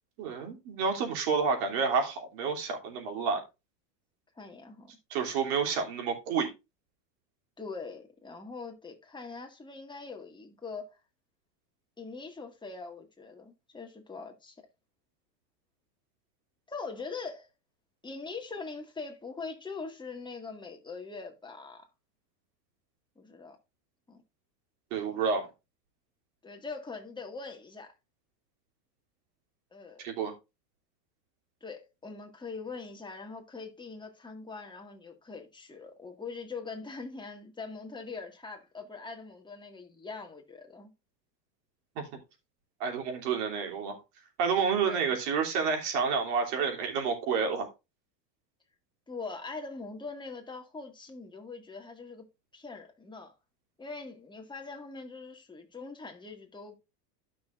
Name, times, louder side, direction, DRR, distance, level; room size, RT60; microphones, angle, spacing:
voice 1, 0.2-3.4 5.1-6.5 24.9-25.5 30.0-30.3 42.0-42.1 42.8-44.0 44.4-47.7, right 5 dB, 65° right, 3.1 m, -29 dB
voice 2, 4.4-5.0 7.6-11.0 12.0-14.7 16.7-17.5 18.0-21.9 23.2-23.6 24.1-24.2 26.4-27.9 29.7-30.0 31.6-40.9 44.8-45.2 49.1-52.3 52.5-53.3 53.8-56.8, left 4 dB, 10° left, 1.9 m, -42 dB
12.5 x 6.1 x 2.5 m
supercardioid pair, 115°, 49 cm